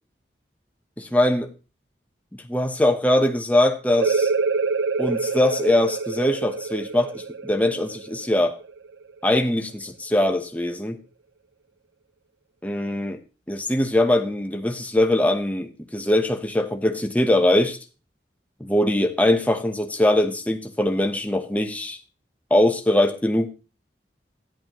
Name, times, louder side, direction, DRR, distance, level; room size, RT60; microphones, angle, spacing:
voice 1, 1.0-1.5 2.3-4.3 5.0-8.6 9.2-11.0 12.6-13.2 13.5-17.8 18.6-22.0 22.5-23.5, left 1 dB, 10° left, 0.8 m, -22 dB
sound 1, 4.0-9.3, right 4 dB, 85° right, 0.6 m, -26 dB
13.5 x 10.5 x 3.0 m
head